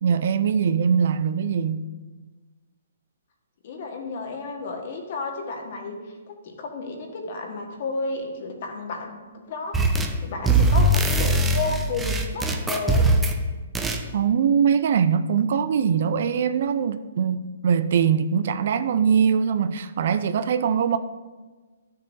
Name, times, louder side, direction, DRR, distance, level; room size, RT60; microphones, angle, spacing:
voice 1, 0.0-1.9 14.1-21.0, right 7 dB, 55° right, 0.4 m, -22 dB
voice 2, 3.6-9.8 10.2-13.1, left 3 dB, 50° left, 1.5 m, -32 dB
sound 1, 9.7-10.2 10.4-13.4 13.7-14.0, right 1 dB, 10° right, 0.6 m, -21 dB
11.5 x 6.6 x 2.7 m
hypercardioid pair, 130°, 0 cm